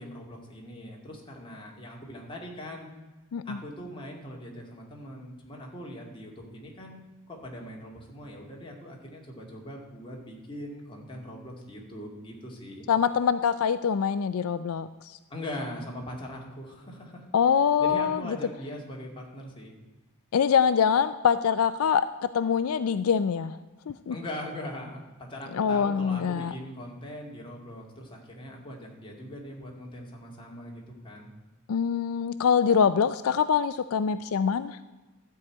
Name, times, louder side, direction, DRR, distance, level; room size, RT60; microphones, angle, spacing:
voice 1, 0.0-2.9 3.5-7.0 7.3-12.9 15.3-17.3 17.8-19.7 24.1-31.3, left 1 dB, 25° left, -1 dB, 2.2 m, -41 dB
voice 2, 12.9-14.9 17.3-18.2 20.3-23.6 23.9-24.2 25.5-26.5 31.7-34.8, left 7 dB, 75° left, 13 dB, 0.4 m, -24 dB
13.0 x 4.8 x 8.6 m, 1.1 s
head